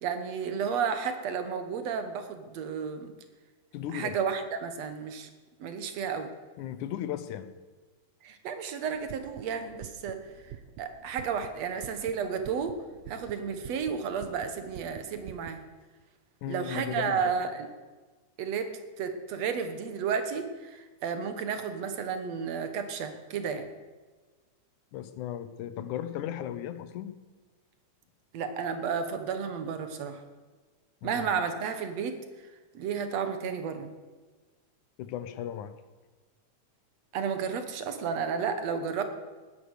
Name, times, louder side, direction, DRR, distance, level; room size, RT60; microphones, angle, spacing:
voice 1, 0.0-3.1 3.9-5.3 5.6-6.3 8.2-10.5 10.8-12.8 13.1-15.6 16.5-17.7 18.4-23.7 28.3-30.2 31.0-32.2 32.7-33.9 37.1-39.0, right 6 dB, 65° right, 8 dB, 2.4 m, -32 dB
voice 2, 3.7-4.1 6.6-7.5 16.4-17.2 24.9-27.1 31.0-31.2 35.0-35.7, left 11 dB, 85° left, 12 dB, 2.4 m, -36 dB
sound 1, 8.9-15.5, right 10 dB, 80° right, 2.2 m, -48 dB
18.5 x 10.5 x 6.6 m, 1.3 s
omnidirectional pair, 3.4 m